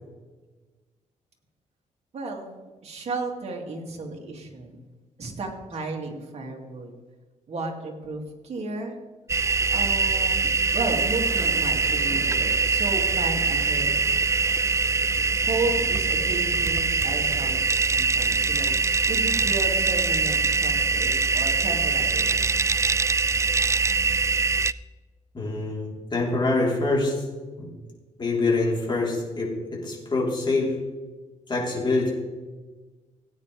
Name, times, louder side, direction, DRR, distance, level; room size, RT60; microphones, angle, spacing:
voice 1, 2.1-2.5 2.8-4.9 5.2-6.9 7.5-9.0 9.7-13.9 15.4-18.7 19.1-22.4, right 2 dB, 55° right, 0 dB, 2.5 m, -33 dB
sound 1, 9.3-24.7, right 4 dB, 20° right, 0.3 m, -23 dB
voice 2, 25.3-27.2 27.6-27.7 28.2-30.7 31.5-32.1, left 2 dB, 35° left, -2 dB, 4.0 m, -25 dB
17.0 x 9.2 x 3.5 m, 1.3 s
cardioid pair, 100°, 13 cm